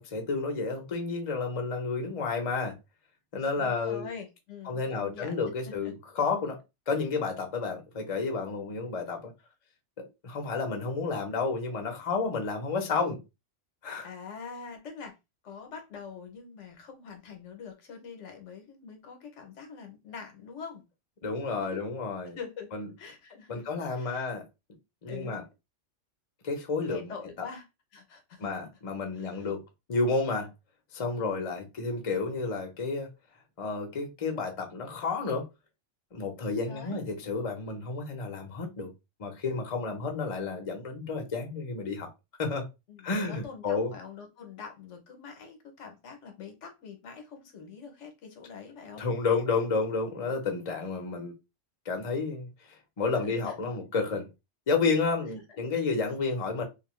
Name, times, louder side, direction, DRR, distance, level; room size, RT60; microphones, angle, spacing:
voice 1, 0.0-2.8 3.3-4.1 4.7-6.6 6.9-9.3 10.0-13.2 13.8-14.1 21.2-22.4 22.7-22.9 23.5-24.4 25.0-25.4 26.4-27.5 28.4-29.6 29.9-30.5 30.9-33.1 33.6-35.4 36.1-38.9 39.2-42.1 42.4-42.7 43.0-43.9 49.0-51.3 51.9-52.5 53.0-54.3 54.7-56.6, left 4 dB, 35° left, 0.6 m, -31 dB
voice 2, 3.6-5.9 14.0-15.1 15.4-20.8 21.7-21.9 22.2-22.7 23.0-23.7 24.0-24.3 25.1-25.4 26.8-27.6 27.9-28.5 29.2-29.5 31.2-31.5 36.7-37.1 42.9-49.0 53.2-53.5, left 6 dB, 70° left, 1.0 m, -44 dB
2.6 x 2.5 x 3.0 m
omnidirectional pair, 1.3 m